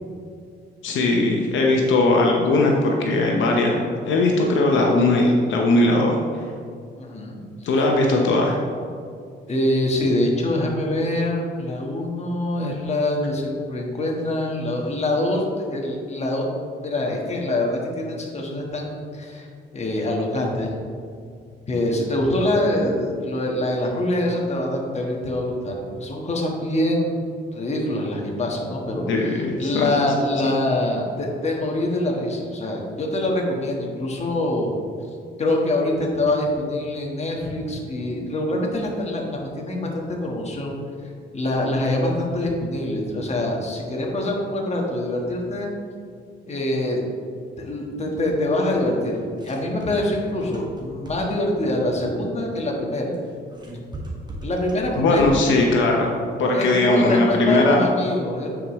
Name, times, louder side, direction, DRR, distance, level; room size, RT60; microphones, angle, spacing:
voice 1, 0.8-6.2 7.7-8.6 29.1-29.9 55.0-56.1 56.4-57.8, left 2 dB, 75° left, 0 dB, 0.8 m, -19 dB
voice 2, 7.0-7.7 9.5-15.4 15.7-16.4 16.8-19.5 19.7-20.8 21.7-27.2 27.5-34.7 35.4-40.8 41.3-45.7 46.5-47.0 47.6-53.1 54.4-55.3 56.5-58.6, left 1 dB, 35° left, -1 dB, 1.4 m, -24 dB
sound 1, 49.0-51.5 53.1-55.6, right 1 dB, 20° right, 1.4 m, -37 dB
9.1 x 4.9 x 3.1 m, 2.3 s
cardioid pair, 90°, 20 cm